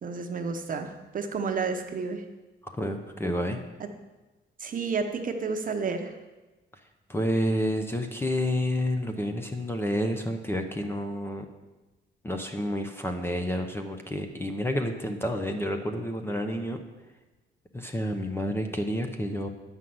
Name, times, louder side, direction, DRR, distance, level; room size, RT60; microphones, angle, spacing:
voice 1, 0.0-2.2 3.8-3.9 4.6-6.1, right 5 dB, 40° right, 5 dB, 0.9 m, -31 dB
voice 2, 2.6-3.6 7.1-11.5 12.2-16.8 17.7-19.5, equal, 10° left, 5 dB, 0.8 m, -29 dB
9.9 x 5.6 x 7.8 m, 1.1 s
wide cardioid pair, 155°, 20 cm